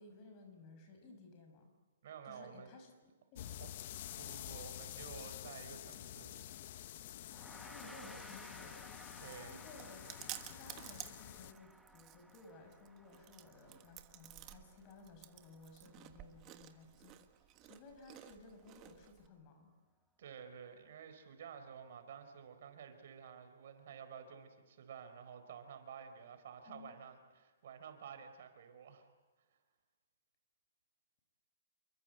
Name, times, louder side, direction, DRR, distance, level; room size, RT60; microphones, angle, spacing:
voice 1, 0.0-1.7 2.2-3.7 7.6-8.8 9.3-10.1 10.5-17.2 17.6-19.7 26.7-27.0, left 3 dB, 30° left, 5 dB, 6.1 m, -57 dB
voice 2, 2.0-2.8 3.6-3.7 4.1-6.5 9.2-9.6 20.2-29.1, right 7 dB, 60° right, 8 dB, 4.6 m, -52 dB
sound 1, 3.4-11.5, left 12 dB, 45° left, 1.0 m, -49 dB
Gong, 7.3-16.9, right 1 dB, 5° right, 1.2 m, -59 dB
Chewing mastication, 8.6-19.3, right 14 dB, 25° right, 1.5 m, -54 dB
28.0 x 23.5 x 8.0 m, 1.3 s
hypercardioid pair, 155°, 0 cm